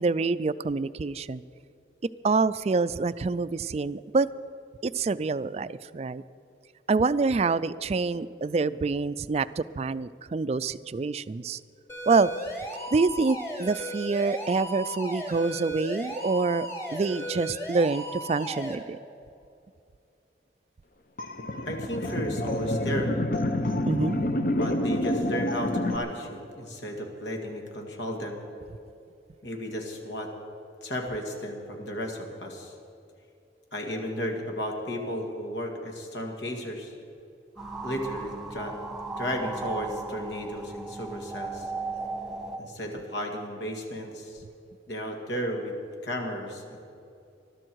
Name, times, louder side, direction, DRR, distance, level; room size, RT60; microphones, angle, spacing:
voice 1, 0.0-1.4 2.2-4.3 4.8-6.2 6.9-11.6 12.1-12.3 12.9-19.0 23.8-24.2, right 4 dB, 35° right, 16 dB, 0.3 m, -26 dB
sound 1, 11.9-18.8, equal, 15° left, 1.6 m, -36 dB
sound 2, 21.2-26.0, left 1 dB, 50° left, 0.8 m, -28 dB
voice 2, 21.6-23.1 24.5-28.4 29.4-30.3 30.8-32.8 33.7-36.9 37.8-38.7 39.2-41.7 42.6-44.4 44.9-45.8 46.0-46.8, equal, 80° left, 2 dB, 2.1 m, -34 dB
sound 3, 37.6-42.6, right 3 dB, 5° right, 1.2 m, -36 dB
20.5 x 12.5 x 4.7 m, 2.6 s
head